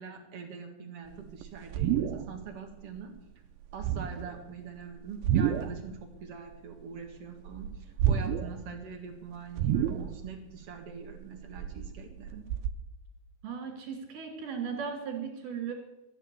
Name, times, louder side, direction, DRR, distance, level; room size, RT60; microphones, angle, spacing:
voice 1, 0.0-3.1 3.7-12.4, right 6 dB, 50° right, 3 dB, 2.2 m, -43 dB
sound 1, 1.1-2.5 2.8-3.2 3.7-4.4 5.1-5.9 6.2-7.1 7.5-8.7 9.0-9.1 9.5-10.4 10.8-12.7, right 9 dB, 85° right, 2.5 m, -30 dB
voice 2, 13.4-15.7, right 6 dB, 70° right, 4 dB, 3.9 m, -36 dB
13.0 x 9.8 x 6.9 m, 0.95 s
omnidirectional pair, 4.2 m